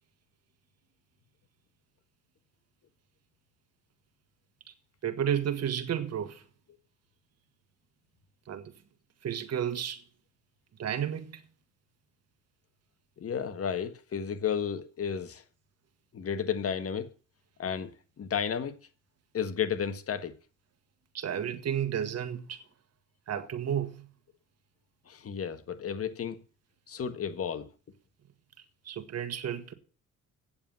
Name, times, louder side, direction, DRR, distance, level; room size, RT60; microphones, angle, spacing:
voice 1, 5.0-6.4 8.5-8.7 9.2-10.0 10.8-11.4 21.1-22.6 23.3-24.1 28.8-29.7, right 9 dB, 55° right, 1.6 m, -32 dB
voice 2, 13.2-15.4 16.1-17.1 17.6-17.9 18.2-18.8 19.3-20.4 25.1-26.4 26.9-27.7, left 7 dB, 50° left, 1.6 m, -32 dB
8.8 x 7.4 x 7.5 m
cardioid pair, 90°, 30 cm